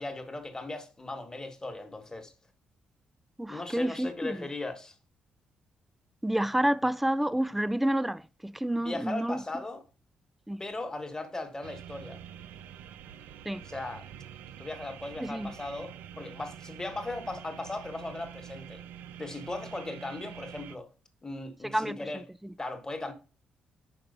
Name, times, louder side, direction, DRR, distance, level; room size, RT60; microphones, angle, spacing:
voice 1, 0.0-2.3 3.5-4.9 8.8-9.8 10.6-12.2 13.6-14.1 14.6-18.8 19.2-20.9 21.2-22.2 22.6-23.1, left 2 dB, 20° left, 1.3 m, -38 dB
voice 2, 3.4-4.5 6.2-9.4 10.5-10.6 13.5-13.6 15.2-15.5 21.6-22.2, right 1 dB, 5° right, 0.3 m, -29 dB
sound 1, 11.6-20.8, right 9 dB, 85° right, 0.4 m, -46 dB
5.4 x 4.4 x 5.4 m
cardioid pair, 85°, 3 cm